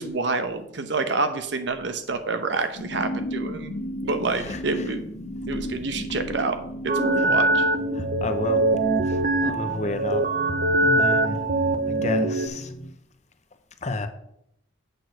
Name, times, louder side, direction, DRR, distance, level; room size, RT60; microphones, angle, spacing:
voice 1, 0.0-5.1 5.5-6.6 6.8-7.6, right 3 dB, 65° right, 8 dB, 0.8 m, -28 dB
sound 1, 2.8-12.9, equal, 85° left, 1.1 m, -35 dB
voice 2, 4.3-4.9 7.1-7.3 7.9-8.6 9.0-10.3 10.8-11.5 11.9-12.7 13.8-14.1, left 2 dB, 35° left, 8 dB, 0.7 m, -31 dB
sound 2, 6.9-12.5, right 2 dB, 45° right, 0.5 m, -23 dB
8.1 x 4.5 x 6.4 m, 0.77 s
head